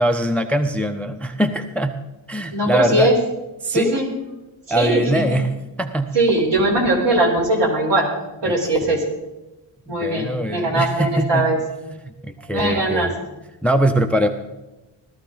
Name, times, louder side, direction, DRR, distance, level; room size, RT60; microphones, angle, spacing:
voice 1, 0.0-2.0 2.3-3.1 3.6-4.0 4.7-5.5 5.8-6.1 8.5-8.6 10.0-11.5 12.0-13.1 13.6-14.3, right 1 dB, 5° left, 8 dB, 0.5 m, -22 dB
voice 2, 2.5-3.1 3.7-4.1 4.7-5.0 6.1-8.1 8.4-9.0 9.9-11.6 12.5-13.1, right 2 dB, 60° right, 0 dB, 4.3 m, -20 dB
17.5 x 13.0 x 4.0 m, 1.0 s
wide cardioid pair, 140°, 48 cm